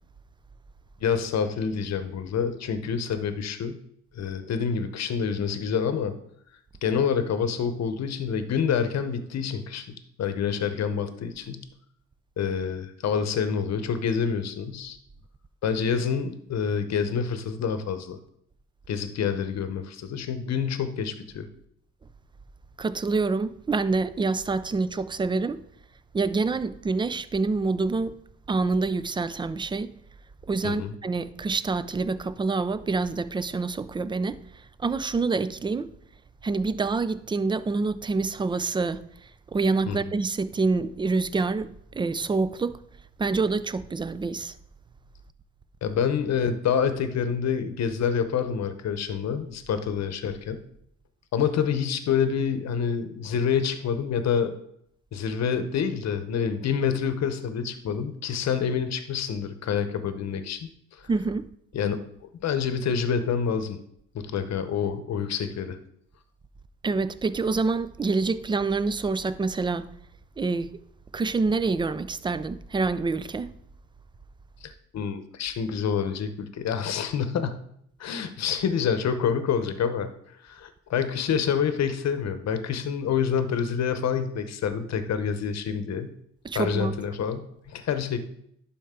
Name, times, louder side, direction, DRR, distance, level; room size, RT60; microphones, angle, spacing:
voice 1, 1.0-3.8 4.1-6.2 6.8-9.9 10.2-11.7 12.4-15.0 15.6-18.2 18.9-21.5 30.6-30.9 39.9-40.0 45.8-50.6 51.3-54.5 55.1-61.0 61.7-62.0 62.4-63.8 64.1-65.8 74.6-77.6 78.0-80.1 80.4-86.1 86.5-88.3, left 7 dB, 60° left, 0.9 m, -27 dB
voice 2, 22.8-25.6 26.1-28.2 28.5-29.9 30.5-34.4 34.8-35.9 36.4-39.0 39.5-42.8 43.2-44.5 61.1-61.5 66.8-69.9 70.4-70.7 71.1-73.5 86.4-87.0, right 3 dB, 15° right, 0.3 m, -26 dB
11.0 x 4.3 x 3.7 m
cardioid pair, 90°, 30 cm